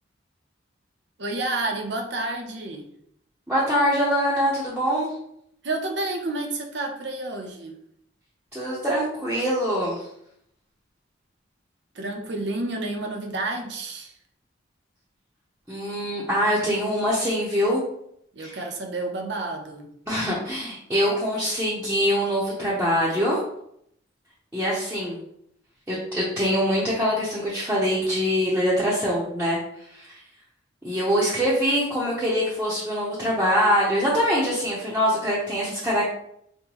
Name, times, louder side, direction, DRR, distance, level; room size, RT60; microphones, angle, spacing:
voice 1, 1.2-2.9 5.6-7.8 11.9-14.1 18.3-19.9, right 2 dB, 60° right, 3 dB, 0.7 m, -30 dB
voice 2, 3.5-5.1 8.5-10.1 15.7-17.8 18.4-18.6 20.1-23.4 24.5-25.2 25.9-30.2 30.8-36.1, equal, 10° right, -8 dB, 0.7 m, -24 dB
5.3 x 2.2 x 3.0 m, 0.72 s
head